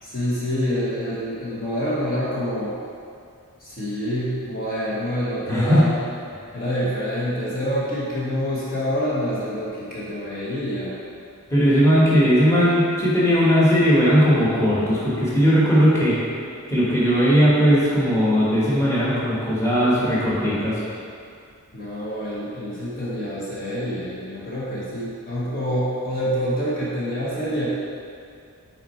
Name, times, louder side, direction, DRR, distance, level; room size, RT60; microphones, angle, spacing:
voice 1, 0.0-2.8 3.6-6.0 6.5-11.0 21.7-27.7, equal, 40° left, -8 dB, 1.0 m, -26 dB
voice 2, 5.5-5.9 11.5-16.2 16.7-20.8, equal, 15° left, -9 dB, 1.3 m, -18 dB
5.9 x 4.4 x 4.3 m, 2.4 s
head